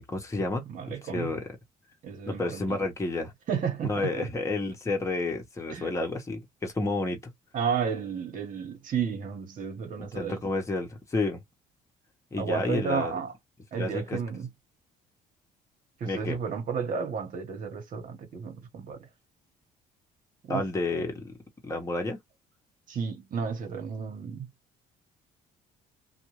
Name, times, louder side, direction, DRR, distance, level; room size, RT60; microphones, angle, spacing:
voice 1, 0.0-0.6 1.0-1.5 2.3-3.3 3.8-7.2 10.0-11.4 12.3-13.1 13.8-14.2 16.0-16.4 20.5-21.3 21.6-22.2, left 2 dB, 15° left, 1.1 m, -30 dB
voice 2, 0.7-1.3 2.0-2.8 3.5-4.3 5.7-5.9 7.5-10.4 12.4-13.3 13.7-14.5 16.0-19.1 20.4-20.6 22.9-24.5, right 6 dB, 55° right, 1.3 m, -32 dB
2.6 x 2.4 x 3.1 m
cardioid pair, 110°, 17 cm